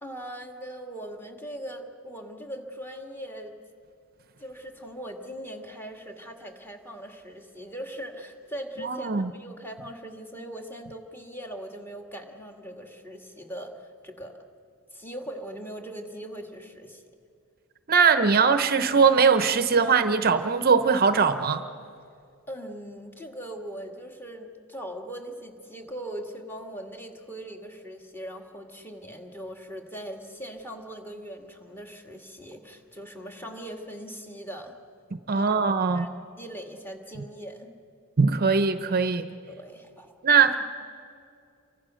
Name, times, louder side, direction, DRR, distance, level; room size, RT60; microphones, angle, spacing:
voice 1, 0.0-3.5 4.4-14.4 14.9-17.0 22.5-34.7 35.3-35.6 35.9-37.7 39.5-40.1, right 1 dB, 10° left, 3 dB, 2.1 m, -40 dB
voice 2, 8.8-9.3 17.9-21.6 35.3-36.1 38.2-39.3 40.2-40.7, right 5 dB, 45° right, 10 dB, 0.7 m, -21 dB
28.5 x 24.5 x 6.4 m, 2.4 s
head